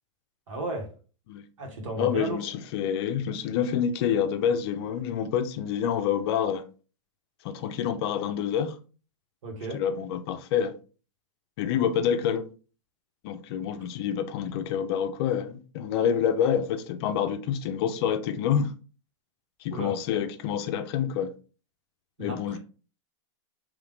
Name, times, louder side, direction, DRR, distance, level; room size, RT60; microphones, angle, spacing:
voice 1, 0.5-0.9 1.6-2.4 9.4-9.8 19.7-19.9 22.2-22.6, right 2 dB, 80° right, 1.9 m, -34 dB
voice 2, 2.0-6.6 7.4-8.8 9.7-10.7 11.6-12.5 13.2-18.7 19.6-21.3 22.2-22.6, left 8 dB, 50° left, 0.6 m, -27 dB
3.8 x 3.1 x 3.5 m
hypercardioid pair, 140°, 16 cm